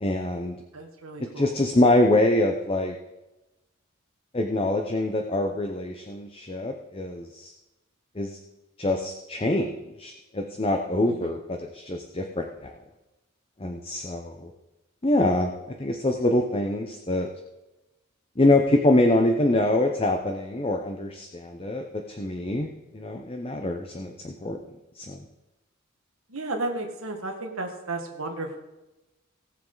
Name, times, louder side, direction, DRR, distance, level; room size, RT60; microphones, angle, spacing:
voice 1, 0.0-0.6 1.4-2.9 4.3-7.5 8.2-8.4 8.8-12.7 13.6-14.5 15.0-17.3 18.4-24.6 25.0-25.2, left 1 dB, 25° left, 4 dB, 0.7 m, -25 dB
voice 2, 0.7-1.5 11.0-11.4 26.3-28.6, right 2 dB, 85° right, 2 dB, 1.7 m, -33 dB
17.5 x 7.3 x 3.9 m, 1.0 s
head